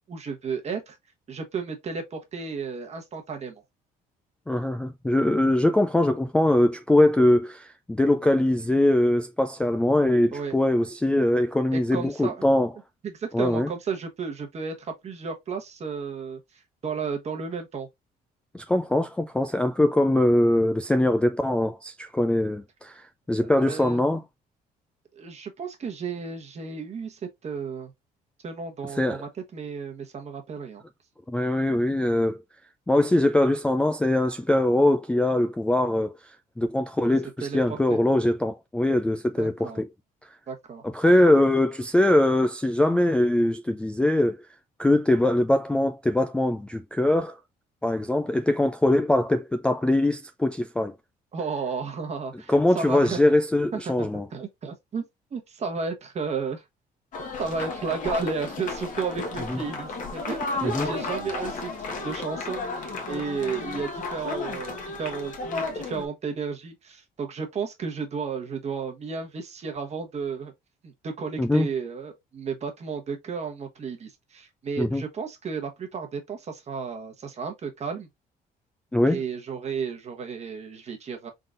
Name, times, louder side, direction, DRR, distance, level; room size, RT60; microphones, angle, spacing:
voice 1, 0.1-1.0 1.3-3.6 10.3-10.5 11.7-12.4 13.0-16.4 16.8-17.9 23.4-24.0 25.1-27.9 28.4-30.8 37.4-38.0 39.4-39.8 40.5-40.8 51.3-53.2 53.7-55.0 55.3-56.6 57.4-70.5 70.8-78.1 79.1-81.3, right 5 dB, 40° right, 1.1 m, -33 dB
voice 2, 4.5-12.7 13.3-13.7 18.5-23.0 23.3-24.2 29.0-29.2 31.3-32.4 32.9-36.1 36.6-39.9 40.9-44.4 44.8-47.4 47.8-50.9 52.5-54.3 59.5-59.6 60.6-60.9 71.4-71.7 74.8-75.0 78.9-79.2, left 1 dB, 5° left, 0.3 m, -22 dB
sound 1, 57.1-66.1, left 3 dB, 50° left, 1.2 m, -33 dB
3.8 x 3.8 x 2.4 m
cardioid pair, 110°, 17 cm